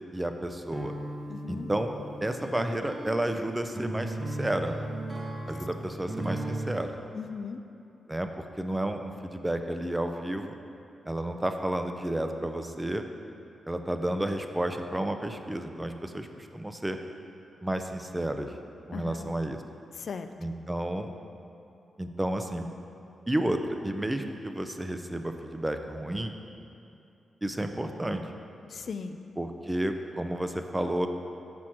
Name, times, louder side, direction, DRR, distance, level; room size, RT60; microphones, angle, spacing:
voice 1, 0.1-0.9 1.5-1.9 2.2-4.8 5.5-7.0 8.1-10.5 11.1-13.0 13.7-17.0 17.6-18.5 18.9-19.6 20.4-21.1 22.0-22.7 23.3-26.4 27.4-28.2 29.4-31.1, right 1 dB, 15° right, 6 dB, 0.6 m, -31 dB
sound 1, 0.7-6.8, right 1 dB, 35° right, 1.0 m, -36 dB
voice 2, 1.3-1.7 7.1-7.6 18.9-19.3 19.9-20.3 28.7-29.2, left 5 dB, 65° left, 8 dB, 0.3 m, -37 dB
6.2 x 5.8 x 4.5 m, 2.7 s
supercardioid pair, 45°, 0 cm